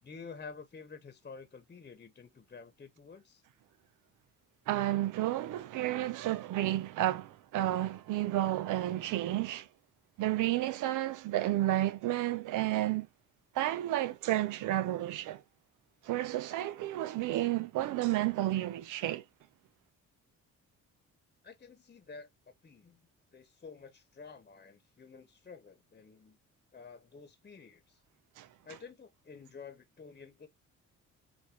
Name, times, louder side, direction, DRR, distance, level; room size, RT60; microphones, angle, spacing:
voice 1, 0.0-3.4 21.4-22.3 22.6-23.0 23.3-26.4 26.7-28.0 28.6-30.5, left 5 dB, 30° left, 1.1 m, -50 dB
voice 2, 4.7-9.7 10.2-13.1 13.5-15.4 16.0-19.2 28.4-28.5, right 14 dB, 85° right, 0.7 m, -31 dB
6.8 x 2.6 x 2.9 m
cardioid pair, 90°, 30 cm